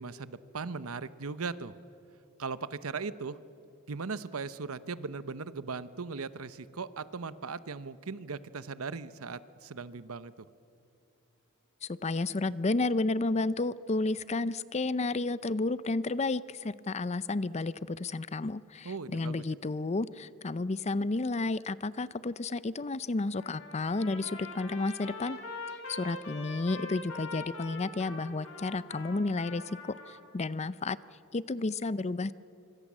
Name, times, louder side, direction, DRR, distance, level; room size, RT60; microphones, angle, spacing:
voice 1, 0.0-1.7 2.4-3.4 3.9-10.5 18.8-19.4, right 4 dB, 80° right, 15 dB, 0.9 m, -38 dB
voice 2, 11.8-25.4 25.9-31.0 31.3-32.3, left 3 dB, 30° left, 17 dB, 0.5 m, -32 dB
Trumpet, 23.3-30.2, left 3 dB, 75° left, 5.0 m, -43 dB
26.0 x 24.5 x 7.5 m, 2.7 s
head